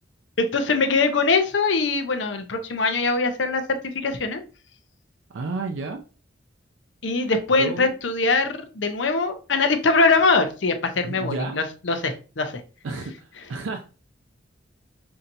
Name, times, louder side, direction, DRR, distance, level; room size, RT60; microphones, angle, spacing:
voice 1, 0.4-4.4 7.0-12.6, left 3 dB, 70° left, 6 dB, 0.7 m, -22 dB
voice 2, 5.3-6.0 7.6-7.9 11.0-11.6 12.8-14.0, right 3 dB, 85° right, 5 dB, 0.5 m, -31 dB
5.7 x 2.7 x 2.6 m, 0.34 s
head